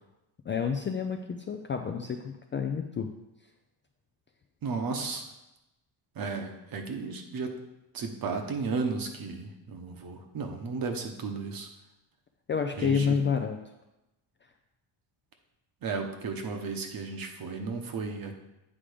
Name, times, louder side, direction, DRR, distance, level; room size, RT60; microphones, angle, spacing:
voice 1, 0.5-3.1 12.5-13.6, left 6 dB, 25° left, 4 dB, 0.3 m, -29 dB
voice 2, 4.6-5.2 6.2-7.5 7.9-11.7 12.8-13.2 15.8-18.3, right 4 dB, 45° right, 5 dB, 1.1 m, -34 dB
8.5 x 3.7 x 5.0 m, 0.94 s
cardioid pair, 120°, 47 cm